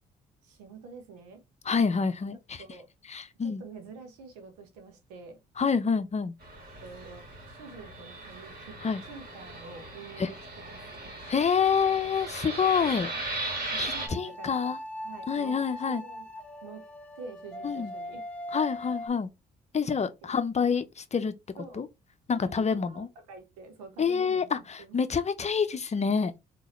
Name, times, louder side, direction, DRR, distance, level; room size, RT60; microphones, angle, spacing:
voice 1, 0.4-1.4 2.6-2.9 3.4-5.4 6.8-8.8 9.0-11.3 12.8-12.9 13.7-14.7 15.0-16.3 16.6-16.8 17.2-18.2 20.2-20.4 21.6-21.9 22.3-25.0, right 4 dB, 85° right, 1.1 m, -47 dB
voice 2, 1.6-2.6 3.1-3.6 5.6-6.3 8.8-9.0 10.2-10.3 11.3-13.1 13.8-14.8 15.3-16.0 17.6-17.9 18.5-19.3 19.7-21.3 21.7-21.9 22.3-23.1 24.0-26.3, left 6 dB, 35° left, 0.7 m, -27 dB
Fixed-wing aircraft airplane, 6.4-14.1, right 2 dB, 50° right, 2.0 m, -38 dB
sound 1, 11.2-11.9 14.0-19.1, left 1 dB, 5° left, 1.4 m, -40 dB
3.9 x 3.0 x 3.1 m
hypercardioid pair, 50°, 20 cm